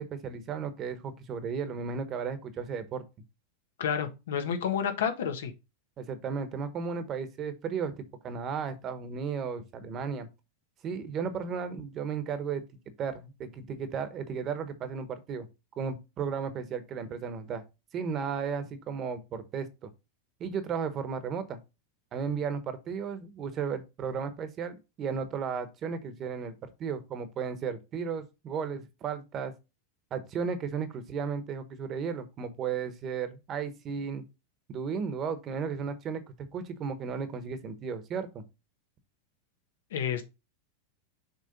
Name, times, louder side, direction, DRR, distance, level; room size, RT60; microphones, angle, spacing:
voice 1, 0.0-3.0 6.0-10.3 10.8-12.6 13.0-15.5 15.8-17.6 17.9-19.9 20.4-21.6 22.1-29.5 30.1-34.2 34.7-38.4, right 6 dB, 30° right, 1.0 m, -34 dB
voice 2, 3.8-5.5 39.9-40.2, left 8 dB, 85° left, 1.3 m, -30 dB
6.6 x 3.2 x 5.2 m
supercardioid pair, 145°, 0 cm